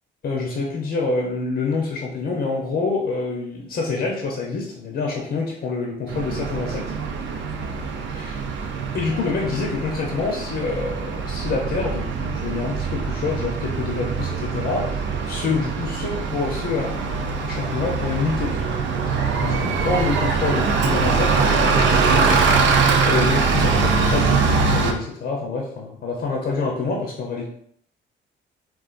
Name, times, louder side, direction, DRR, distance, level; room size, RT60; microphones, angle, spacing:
voice 1, 0.2-6.9 8.1-8.5 8.9-18.7 19.1-22.4 23.0-27.5, left 4 dB, 55° left, -1 dB, 0.7 m, -27 dB
Bus, 6.1-24.9, right 4 dB, 70° right, 0.5 m, -22 dB
3.8 x 2.4 x 2.4 m, 0.67 s
cardioid pair, 90°, 20 cm